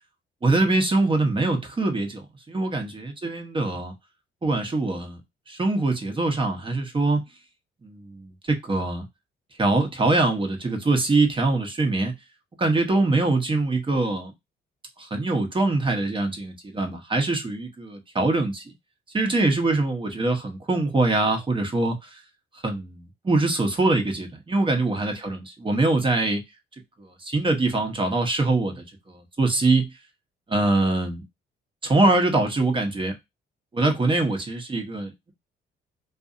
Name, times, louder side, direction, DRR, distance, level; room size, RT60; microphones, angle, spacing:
voice 1, 0.4-3.9 4.4-5.2 5.5-7.2 7.8-9.1 9.6-12.1 12.6-14.3 15.0-18.7 19.1-22.2 22.6-26.4 27.0-29.9 30.5-31.2 31.8-33.1 33.7-35.3, right 2 dB, 25° right, 0.9 m, -23 dB
2.6 x 2.6 x 2.4 m
cardioid pair, 90°, 20 cm